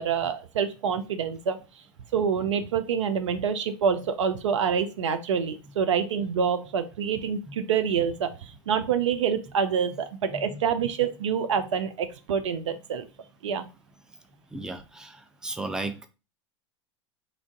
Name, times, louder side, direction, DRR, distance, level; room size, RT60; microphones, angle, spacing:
voice 1, 0.0-1.6 2.1-13.1 13.4-13.7, right 7 dB, 75° right, 0.5 m, -27 dB
voice 2, 14.5-16.1, right 2 dB, 5° right, 0.5 m, -35 dB
3.3 x 2.5 x 3.6 m
figure-of-eight pair, 80°, 16 cm